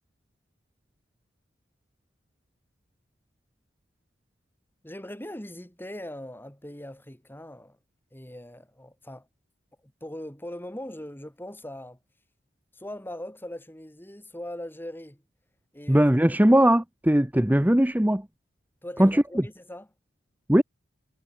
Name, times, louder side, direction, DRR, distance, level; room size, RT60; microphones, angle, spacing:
voice 1, 4.8-7.8 8.1-9.3 10.0-12.0 12.7-15.2 15.7-16.1 16.5-16.6 18.8-19.9, left 1 dB, 10° left, 4.0 m, -40 dB
voice 2, 15.9-18.2 19.0-19.2 20.5-20.6, right 1 dB, 10° right, 0.9 m, -19 dB
head